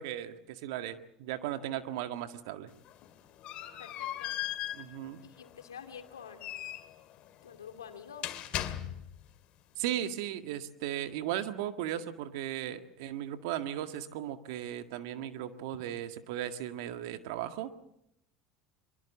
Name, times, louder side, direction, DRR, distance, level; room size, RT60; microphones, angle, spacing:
voice 1, 0.0-2.7 4.7-5.2 9.8-17.7, right 11 dB, 70° right, 9 dB, 1.8 m, -36 dB
sound 1, 2.7-9.3, left 13 dB, 55° left, 2.1 m, -39 dB
voice 2, 3.8-4.4 5.2-6.7 7.4-8.4, left 7 dB, 90° left, 6 dB, 2.5 m, -48 dB
23.5 x 23.5 x 7.3 m, 0.77 s
hypercardioid pair, 75°, 2 cm